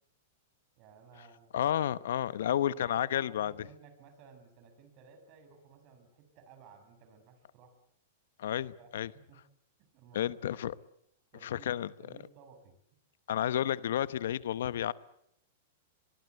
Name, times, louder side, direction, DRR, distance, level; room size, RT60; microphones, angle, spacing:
voice 1, 0.8-1.5 2.2-7.8 8.5-9.4 9.8-10.8 11.3-12.8, right 5 dB, 40° right, 6.3 m, -57 dB
voice 2, 1.5-3.5 8.4-9.1 10.1-10.7 11.4-11.9 13.3-14.9, left 11 dB, 75° left, 0.9 m, -31 dB
24.0 x 22.5 x 8.1 m
hypercardioid pair, 140°, 0 cm